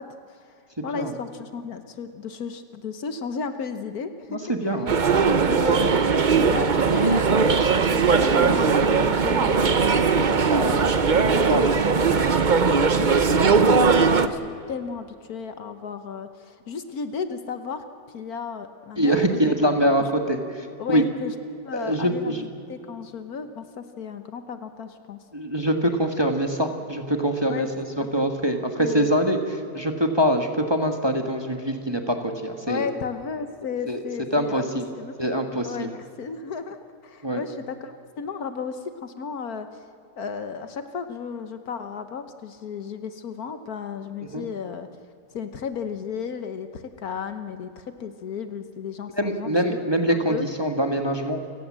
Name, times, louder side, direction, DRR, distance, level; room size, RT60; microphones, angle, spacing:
voice 1, 0.0-4.8 5.5-14.4 14.7-17.8 18.1-19.4 20.2-20.4 20.8-21.3 21.6-25.2 27.5-27.7 28.0-28.1 28.8-29.1 32.7-34.7 34.9-35.2 35.6-39.8 40.2-44.9 45.3-49.8 50.1-50.4, left 6 dB, 60° left, 9 dB, 1.5 m, -34 dB
voice 2, 4.5-4.9 5.3-5.6 10.5-10.8 11.3-11.7 19.0-20.4 20.9-21.0 21.7-22.4 25.3-32.9 33.9-34.0 34.3-34.8 35.2-35.9 37.2-37.4 44.3-44.4 49.2-51.4, equal, 15° right, 4 dB, 1.5 m, -24 dB
sound 1, 4.9-14.3, right 5 dB, 40° right, 0.7 m, -19 dB
29.0 x 17.0 x 7.5 m, 2.6 s
omnidirectional pair, 1.8 m